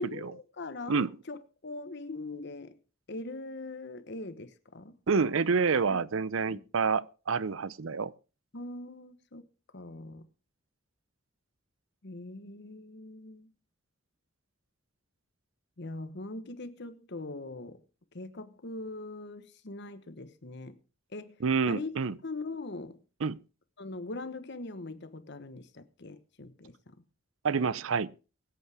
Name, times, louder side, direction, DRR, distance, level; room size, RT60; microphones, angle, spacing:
voice 1, 0.0-2.8 3.1-5.0 5.9-6.0 6.4-6.6 8.5-9.4 9.7-10.3 12.0-13.5 15.8-17.8 18.1-20.8 21.1-21.4 21.7-21.9 22.2-23.0 23.8-26.9, left 2 dB, 60° left, 1.2 m, -41 dB
voice 2, 5.1-8.1 21.4-22.2 23.2-23.4 27.4-28.1, right 5 dB, 85° right, 0.6 m, -28 dB
22.5 x 8.3 x 3.5 m
head